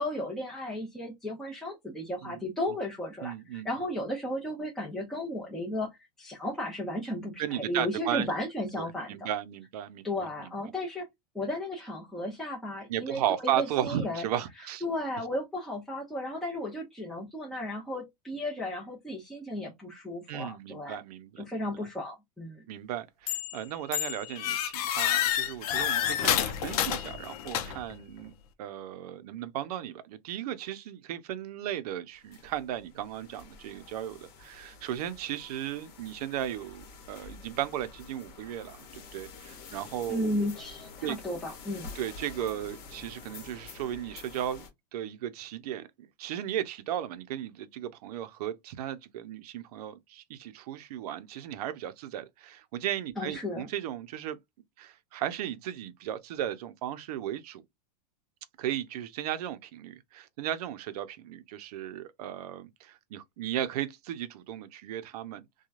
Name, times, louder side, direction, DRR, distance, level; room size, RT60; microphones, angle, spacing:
voice 1, 0.0-5.9 6.2-9.3 10.0-11.1 11.3-14.3 14.8-21.0 21.4-22.6 40.1-41.9 53.2-53.7, left 1 dB, ahead, 0.8 m, -34 dB
voice 2, 3.2-3.7 7.4-8.3 8.8-10.5 12.9-14.8 20.3-21.5 22.7-40.5 41.0-41.2 41.9-44.6 44.9-54.4 54.8-57.6 58.6-65.4, right 11 dB, 65° right, 0.6 m, -35 dB
sound 1, 23.3-23.6 23.9-28.0, left 11 dB, 60° left, 0.6 m, -29 dB
sound 2, 32.1-44.7, left 5 dB, 45° left, 1.2 m, -48 dB
3.0 x 2.3 x 2.4 m
supercardioid pair, 140°, 21 cm